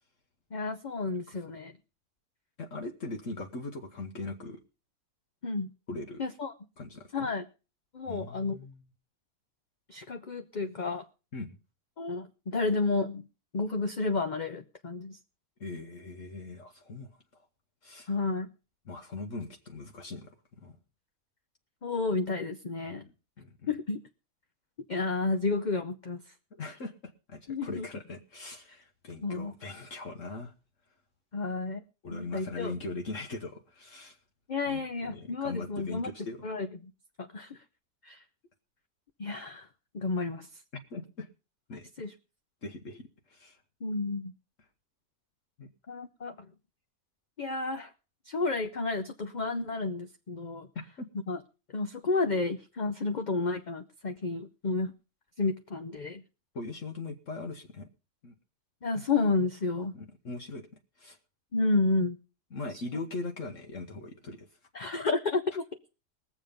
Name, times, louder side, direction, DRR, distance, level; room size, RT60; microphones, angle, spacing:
voice 1, 0.5-1.7 5.4-5.7 6.2-6.5 7.1-7.5 7.9-8.6 9.9-11.0 12.0-13.3 13.5-15.2 18.1-18.5 21.8-23.1 23.7-24.0 24.9-26.3 27.5-27.9 29.2-29.5 31.3-31.8 32.1-32.7 34.5-36.1 36.4-36.9 37.2-37.6 38.0-38.2 39.2-39.7 39.9-40.6 42.0-42.1 43.8-44.3 45.9-46.5 47.4-47.9 48.2-50.7 51.3-51.4 51.7-54.9 55.4-56.2 58.8-59.9 61.5-62.2 64.7-65.7, left 3 dB, 40° left, 6 dB, 0.7 m, -31 dB
voice 2, 2.6-4.6 5.9-6.2 6.8-7.3 8.0-8.8 11.3-11.6 15.6-17.5 17.8-18.1 18.8-20.3 20.6-20.8 22.9-23.0 23.4-23.7 26.6-30.5 32.0-34.2 34.7-36.4 40.9-41.3 41.7-41.9 42.6-43.6 45.6-45.7 51.0-51.1 56.5-57.9 58.2-58.3 59.9-60.7 61.0-61.2 62.5-64.5, left 3 dB, 55° left, 4 dB, 1.5 m, -40 dB
20.5 x 7.3 x 5.2 m, 0.33 s
omnidirectional pair, 1.6 m